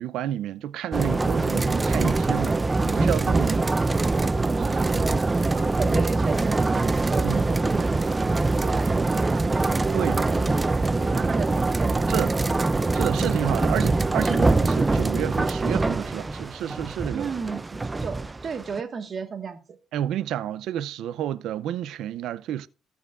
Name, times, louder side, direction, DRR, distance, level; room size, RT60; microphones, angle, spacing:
voice 1, 0.0-2.6 2.8-3.7 7.2-7.4 9.9-10.2 12.1-12.3 12.9-17.3 19.9-22.7, right 11 dB, 80° right, 0.5 m, -30 dB
sound 1, 0.9-18.8, right 3 dB, 20° right, 0.3 m, -23 dB
voice 2, 3.6-12.9 17.1-19.6, right 6 dB, 45° right, 1.4 m, -36 dB
17.5 x 5.9 x 2.4 m
cardioid pair, 105°, 0 cm